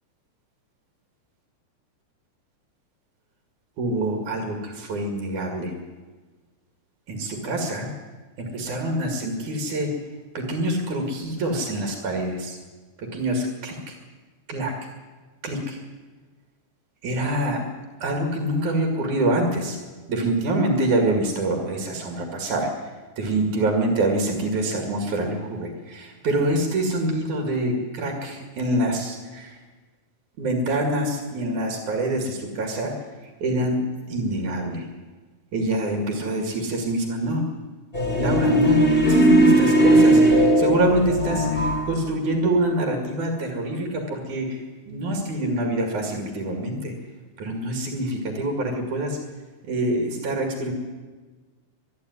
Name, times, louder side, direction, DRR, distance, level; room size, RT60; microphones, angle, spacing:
voice 1, 3.8-5.7 7.1-7.9 8.4-9.9 10.4-12.6 13.1-14.0 14.5-14.8 15.4-15.8 17.0-17.6 18.0-19.8 20.1-22.7 23.2-29.6 30.4-32.9 33.4-33.8 34.1-34.9 35.5-37.4 38.1-46.9 47.4-49.2 49.6-50.7, right 1 dB, 75° right, 2 dB, 3.8 m, -25 dB
sound 1, 37.9-41.9, right 1 dB, 15° left, 4.0 m, -18 dB
24.5 x 11.0 x 9.7 m, 1.3 s
omnidirectional pair, 3.5 m